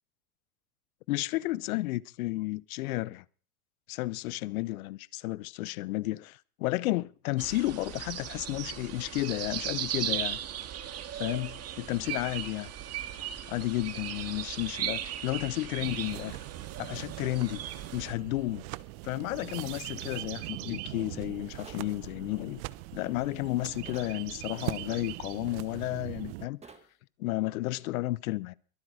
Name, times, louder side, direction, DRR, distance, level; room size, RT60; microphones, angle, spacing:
voice 1, 1.1-3.2 3.9-10.4 11.1-12.7 13.5-16.4 16.8-17.6 17.9-18.6 19.0-22.6 22.9-26.6 27.2-28.5, left 18 dB, 70° left, 0.8 m, -32 dB
sound 1, 7.4-18.1, right 10 dB, 35° right, 1.8 m, -37 dB
sound 2, 15.8-26.5, right 19 dB, 55° right, 0.9 m, -41 dB
sound 3, 21.6-21.9 23.9-24.2 26.6-26.9, right 4 dB, 15° right, 1.7 m, -49 dB
23.0 x 8.0 x 4.9 m
hypercardioid pair, 115°, 44 cm